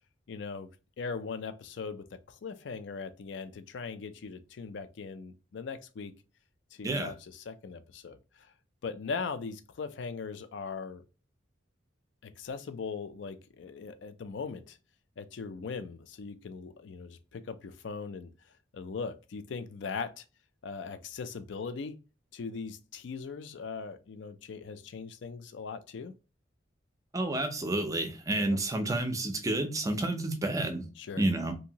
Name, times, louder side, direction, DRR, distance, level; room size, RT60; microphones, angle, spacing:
voice 1, 0.3-0.7 1.0-6.1 6.7-8.2 8.8-11.0 12.2-14.8 15.2-18.3 18.7-20.2 20.6-22.0 22.3-26.1 28.4-28.6 31.0-31.2, left 5 dB, 70° left, 0.4 m, -39 dB
voice 2, 27.1-30.9 31.2-31.5, right 2 dB, 15° right, 0.4 m, -30 dB
2.8 x 2.6 x 2.8 m
head